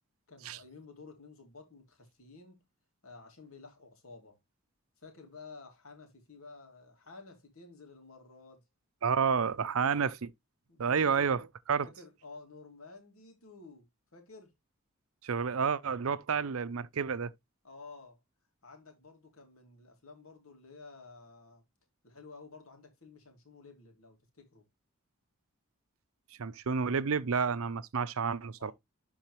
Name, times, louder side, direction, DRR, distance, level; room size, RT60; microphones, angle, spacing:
voice 1, 0.3-2.6 3.0-4.4 5.0-8.6 9.8-10.1 10.7-11.4 11.8-14.5 17.6-18.2 18.6-21.6 22.0-24.6 28.6-28.7, left 3 dB, 75° left, 2.5 m, -52 dB
voice 2, 9.0-10.3 10.8-11.4 11.7-11.9 15.2-17.3 26.4-28.7, right 6 dB, 75° right, 0.6 m, -30 dB
11.5 x 3.9 x 3.1 m
head